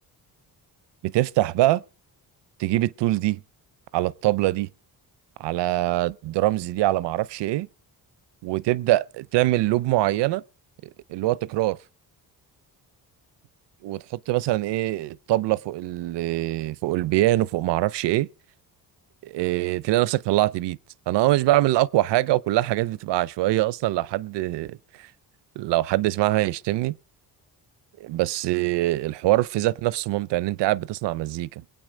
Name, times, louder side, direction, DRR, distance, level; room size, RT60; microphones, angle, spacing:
voice 1, 1.0-1.8 2.6-3.4 3.9-4.7 5.4-7.7 8.4-10.4 11.1-11.8 13.8-18.3 19.2-20.8 21.1-24.8 25.6-27.0 28.0-31.5, right 16 dB, 85° right, 0.6 m, -23 dB
22.5 x 8.7 x 5.1 m
cardioid pair, 90°, 41 cm